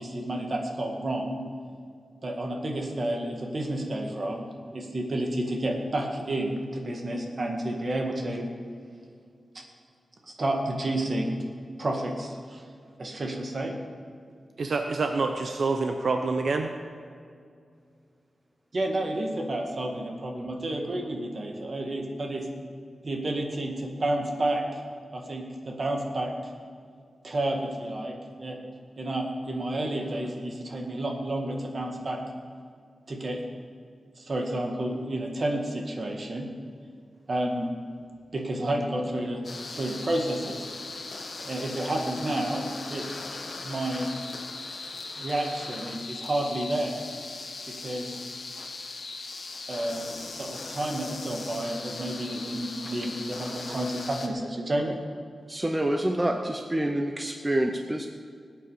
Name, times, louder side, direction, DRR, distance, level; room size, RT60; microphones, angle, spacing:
voice 1, 0.0-1.4 2.2-4.4 4.7-8.5 9.5-9.6 10.4-11.4 11.8-12.6 13.0-13.8 18.7-22.5 23.0-24.8 25.1-26.5 27.2-28.6 29.0-32.2 33.1-33.4 34.2-36.5 37.3-37.7 38.3-39.4 39.7-40.7 41.4-43.1 43.6-44.1 45.2-47.0 47.7-48.2 49.7-55.0, right 1 dB, 40° right, 2 dB, 2.0 m, -30 dB
voice 2, 14.6-16.7, right 3 dB, 65° right, 5 dB, 0.9 m, -27 dB
sound 1, 39.4-54.3, left 3 dB, 55° left, 1.5 m, -39 dB
voice 3, 55.5-58.1, right 1 dB, 15° right, 4 dB, 0.7 m, -27 dB
20.5 x 8.9 x 5.1 m, 2.2 s
wide cardioid pair, 145°, 0 cm